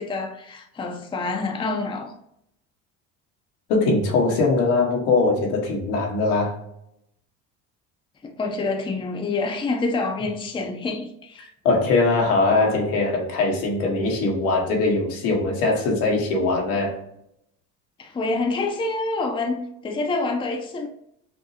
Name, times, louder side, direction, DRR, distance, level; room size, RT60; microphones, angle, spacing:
voice 1, 0.0-2.1 8.2-11.5 18.0-20.9, left 3 dB, 15° left, 0.5 m, -27 dB
voice 2, 3.7-6.5 11.6-16.9, left 3 dB, 85° left, 1.3 m, -21 dB
6.0 x 2.0 x 2.7 m
supercardioid pair, 95°, 36 cm